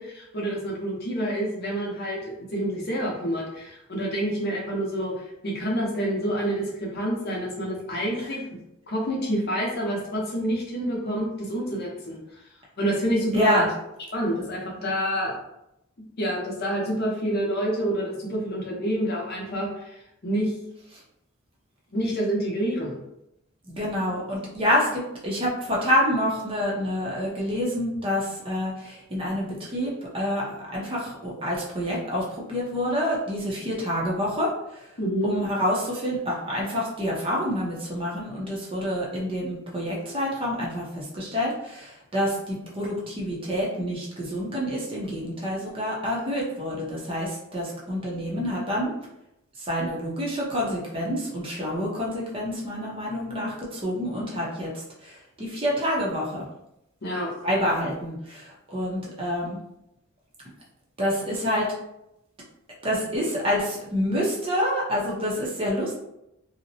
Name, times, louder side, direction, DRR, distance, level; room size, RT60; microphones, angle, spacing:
voice 1, 0.0-8.4 8.9-12.4 12.8-13.6 14.1-15.3 16.2-20.5 21.9-23.0 35.0-35.3 57.0-57.3, equal, 50° left, -2 dB, 0.6 m, -28 dB
voice 2, 13.3-13.7 23.7-34.9 35.2-48.9 49.6-56.5 57.4-59.6 61.0-61.7 62.8-65.9, equal, 25° right, -4 dB, 0.6 m, -27 dB
2.7 x 2.0 x 2.7 m, 0.84 s
head